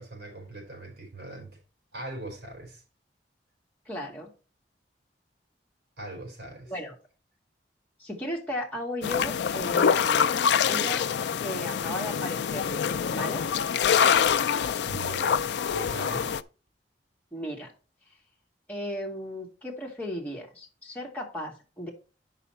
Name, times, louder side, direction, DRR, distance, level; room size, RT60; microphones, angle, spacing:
voice 1, 0.0-1.5 1.9-2.8 6.0-6.7 14.9-15.4 15.7-16.3, right 2 dB, 70° right, 4.2 m, -40 dB
voice 2, 3.9-4.3 6.7-6.9 8.0-11.1 11.4-12.8 13.1-13.5 17.3-17.7 18.7-21.9, left 1 dB, 10° left, 1.7 m, -35 dB
sound 1, 9.0-16.4, left 7 dB, 75° left, 0.4 m, -25 dB
8.0 x 5.7 x 4.3 m
head